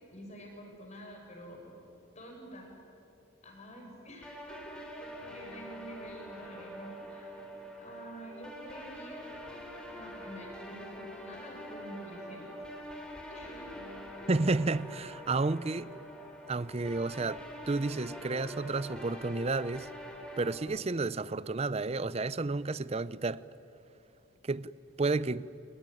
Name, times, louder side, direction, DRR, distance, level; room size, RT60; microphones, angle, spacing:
voice 1, 0.1-1.7 2.1-2.7 3.4-7.3 7.8-9.3 9.9-12.5 13.3-13.7, equal, 35° left, 6.6 m, -48 dB
sound 1, 4.2-20.6, equal, 5° left, 3.5 m, -45 dB
voice 2, 14.3-15.9 16.5-19.9 20.4-23.4 24.4-24.7 25.0-25.5, right 3 dB, 30° right, 0.5 m, -31 dB
27.5 x 20.0 x 9.9 m
head